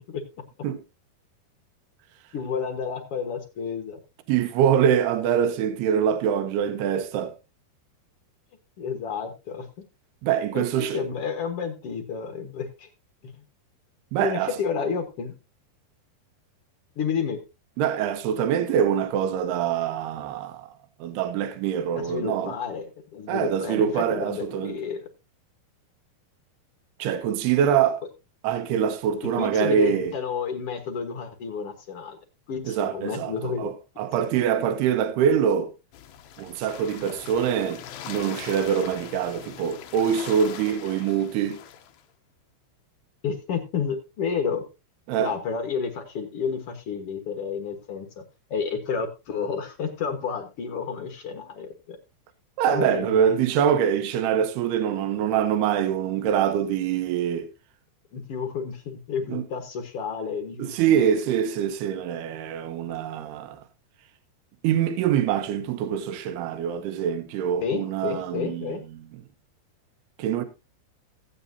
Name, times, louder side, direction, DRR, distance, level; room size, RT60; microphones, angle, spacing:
voice 1, 2.3-4.0 8.8-9.7 10.5-12.9 13.2-13.4 14.2-15.3 17.0-17.4 21.9-25.1 29.4-32.2 32.5-33.7 43.2-44.6 45.2-48.2 48.5-52.0 52.7-53.4 58.1-61.0 67.6-68.8, left 6 dB, 65° left, 1.5 m, -30 dB
voice 2, 4.3-7.3 10.2-11.1 14.1-14.6 17.8-20.7 21.0-22.5 23.3-24.8 27.0-28.0 28.4-30.1 32.7-35.7 36.4-37.8 38.1-41.6 45.1-45.3 52.6-57.5 59.3-59.4 60.6-63.6 64.6-68.8 70.2-70.4, right 8 dB, 85° right, 2.9 m, -24 dB
sound 1, 35.9-42.0, left 10 dB, 90° left, 1.6 m, -41 dB
16.0 x 8.8 x 2.7 m
omnidirectional pair, 4.5 m